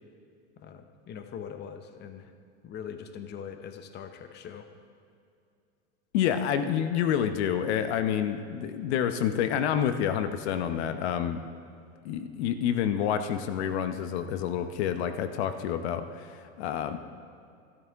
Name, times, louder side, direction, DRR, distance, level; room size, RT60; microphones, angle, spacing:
voice 1, 0.6-2.3 2.6-4.7, left 7 dB, 30° left, 8 dB, 0.8 m, -42 dB
voice 2, 6.1-11.4 12.0-17.0, left 9 dB, 65° left, 10 dB, 0.8 m, -28 dB
13.5 x 12.5 x 3.5 m, 2.4 s
hypercardioid pair, 115°, 35 cm